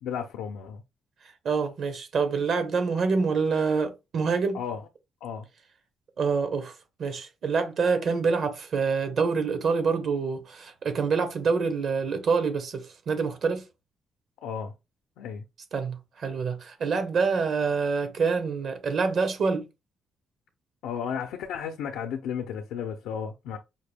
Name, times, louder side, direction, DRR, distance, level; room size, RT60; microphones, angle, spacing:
voice 1, 0.0-0.8 4.5-4.8 5.2-5.5 14.4-14.7 15.2-15.4 20.8-23.6, left 7 dB, 90° left, 0.6 m, -33 dB
voice 2, 1.4-4.6 6.2-6.7 7.0-13.6 15.7-19.7, right 5 dB, 60° right, 1.0 m, -26 dB
5.5 x 2.2 x 3.4 m
cardioid pair, 90°, 0 cm